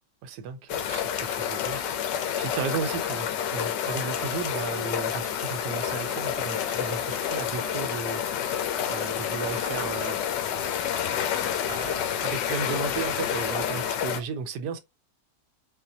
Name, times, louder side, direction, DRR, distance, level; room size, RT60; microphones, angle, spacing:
voice 1, 0.2-8.5 8.9-10.2 11.7-14.8, right 6 dB, 80° right, 1.2 m, -35 dB
sound 1, 0.7-14.2, left 9 dB, 85° left, 1.2 m, -29 dB
4.0 x 2.1 x 2.7 m
omnidirectional pair, 1.8 m